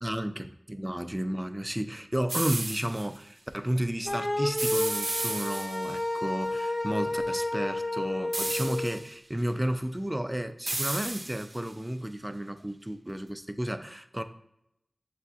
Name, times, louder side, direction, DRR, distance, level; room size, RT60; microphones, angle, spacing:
voice 1, 0.0-14.2, right 1 dB, 20° right, 9 dB, 0.3 m, -32 dB
sound 1, 2.3-3.1 4.6-6.0 8.3-9.1 10.7-11.7, right 2 dB, 75° right, 0.5 m, -33 dB
sound 2, 4.1-8.9, left 1 dB, 60° left, 0.6 m, -31 dB
6.9 x 2.5 x 2.4 m, 0.81 s
wide cardioid pair, 45°, 0 cm